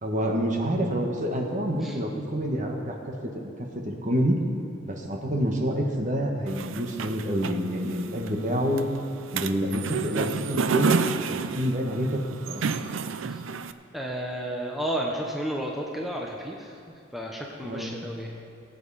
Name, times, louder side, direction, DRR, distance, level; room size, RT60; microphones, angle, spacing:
voice 1, 0.0-3.0 3.2-3.3 3.6-4.4 4.8-8.9 9.3-11.0 11.3-12.2 12.5-12.6 17.6-18.0, equal, 40° right, 1 dB, 1.4 m, -27 dB
sound 1, 6.5-13.7, right 5 dB, 85° right, 0.5 m, -30 dB
voice 2, 13.9-16.8 17.1-18.3, right 1 dB, ahead, -1 dB, 0.9 m, -32 dB
19.5 x 8.3 x 4.2 m, 2.4 s
head